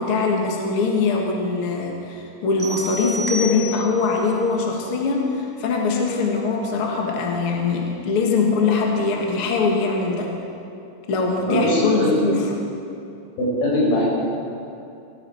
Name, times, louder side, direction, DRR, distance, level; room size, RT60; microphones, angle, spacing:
voice 1, 0.0-10.3 11.1-12.5, left 4 dB, 50° left, 0 dB, 1.9 m, -22 dB
sound 1, 2.6-4.1, equal, 20° left, 0.7 m, -30 dB
voice 2, 11.4-12.1 13.4-14.2, left 1 dB, 80° left, -5 dB, 6.6 m, -20 dB
18.0 x 15.0 x 4.5 m, 2.6 s
omnidirectional pair, 4.3 m